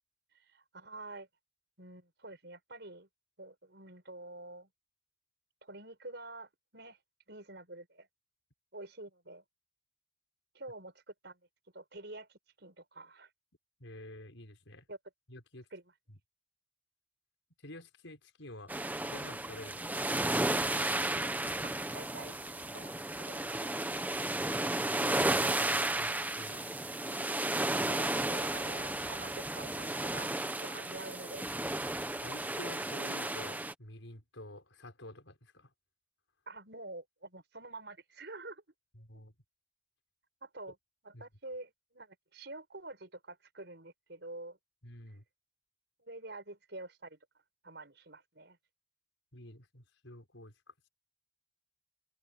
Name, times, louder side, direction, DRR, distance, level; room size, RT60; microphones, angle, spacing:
voice 1, 0.5-1.3 1.8-3.1 3.4-4.7 5.6-7.0 7.3-8.1 8.7-9.4 10.5-11.4 11.7-12.3 12.6-13.3 14.9-15.0 15.7-15.8 21.6-22.3 22.7-24.0 27.7-30.3 30.6-31.5 36.5-38.6 40.4-40.7 41.0-44.6 46.0-47.2 47.6-48.6, right 2 dB, 60° right, 6.8 m, -47 dB
voice 2, 13.8-14.9 15.3-15.7 16.1-16.2 17.6-20.7 24.8-26.6 32.2-35.7 38.9-39.3 41.1-41.2 44.8-45.2 49.3-50.5, left 1 dB, 80° left, 5.9 m, -49 dB
sound 1, 18.7-33.7, right 1 dB, 10° right, 1.1 m, -33 dB
open air
head